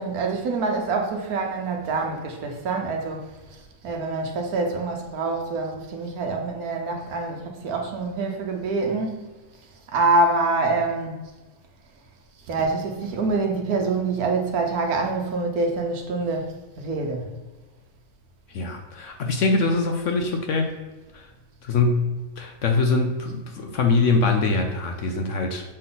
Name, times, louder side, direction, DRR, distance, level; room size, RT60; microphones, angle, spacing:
voice 1, 0.0-3.3 3.8-9.3 9.9-11.2 12.5-17.3, right 3 dB, 65° right, 2 dB, 1.2 m, -25 dB
voice 2, 18.5-20.7 21.1-21.3 21.6-25.6, left 3 dB, 65° left, 4 dB, 0.8 m, -23 dB
6.5 x 3.8 x 3.9 m, 1.2 s
omnidirectional pair, 1.8 m